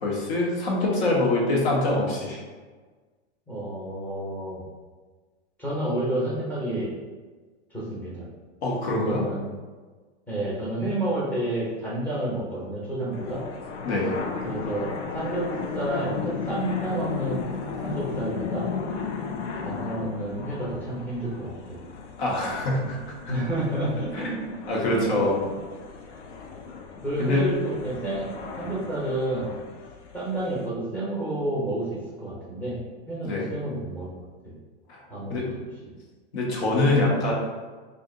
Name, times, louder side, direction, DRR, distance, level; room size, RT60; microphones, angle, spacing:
voice 1, 0.0-2.4 8.6-9.3 13.8-14.2 22.2-23.1 24.1-24.3 24.7-25.3 27.2-27.5 33.2-33.5 34.9-35.0 35.3-35.5 36.3-37.3, left 2 dB, 65° left, -3 dB, 1.2 m, -24 dB
voice 2, 3.5-4.6 5.6-6.9 7.7-8.3 9.1-9.5 10.3-13.4 14.4-15.5 15.7-17.4 17.8-18.7 19.6-21.8 23.3-24.9 25.4-25.5 26.1-26.2 27.0-28.3 28.6-29.5 30.1-34.1 34.4-34.5 35.1-35.6, right 1 dB, 5° left, -7 dB, 0.8 m, -30 dB
sound 1, 13.1-30.7, left 5 dB, 85° left, 0.6 m, -35 dB
2.8 x 2.5 x 3.7 m, 1.4 s
supercardioid pair, 150°, 34 cm